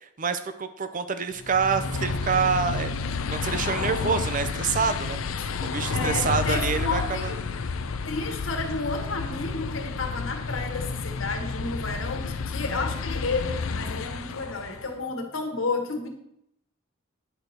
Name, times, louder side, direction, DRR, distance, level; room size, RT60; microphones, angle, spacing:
voice 1, 0.0-2.9 3.3-5.2 5.6-7.3, right 5 dB, 40° right, 10 dB, 0.6 m, -27 dB
sound 1, 1.4-14.9, left 4 dB, 85° left, 0.6 m, -30 dB
voice 2, 5.9-7.4 8.1-16.1, left 3 dB, 70° left, 4 dB, 1.5 m, -31 dB
9.8 x 4.4 x 6.7 m, 0.77 s
head